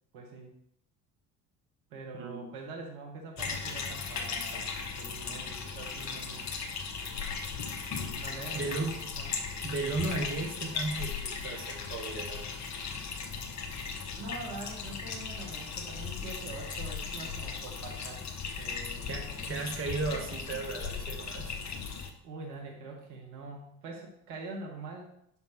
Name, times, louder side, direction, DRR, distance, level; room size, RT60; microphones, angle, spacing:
voice 1, 0.1-0.5 1.9-6.5 8.2-9.4 14.2-18.3 18.6-19.4 22.2-25.1, right 3 dB, 65° right, 0 dB, 1.8 m, -44 dB
voice 2, 2.1-2.5 8.5-9.0 9.6-12.7 19.1-21.6, right 3 dB, 25° right, 1 dB, 1.6 m, -35 dB
sound 1, 3.4-22.1, left 5 dB, 35° left, 1.0 m, -37 dB
11.0 x 5.2 x 3.2 m, 0.74 s
figure-of-eight pair, 60°, 50 cm